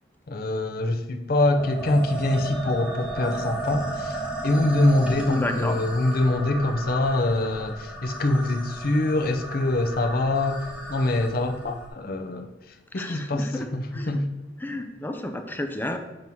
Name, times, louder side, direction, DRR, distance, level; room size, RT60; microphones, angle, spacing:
voice 1, 0.3-4.1 4.4-10.6 10.9-12.5 12.9-13.5 13.7-14.2, left 2 dB, 55° left, 4 dB, 0.6 m, -24 dB
sound 1, 1.6-11.9, right 2 dB, 5° right, 1.0 m, -34 dB
voice 2, 5.3-5.8 12.9-14.2 14.6-16.0, left 1 dB, 10° left, 6 dB, 0.5 m, -31 dB
7.6 x 3.0 x 5.4 m, 1.0 s
head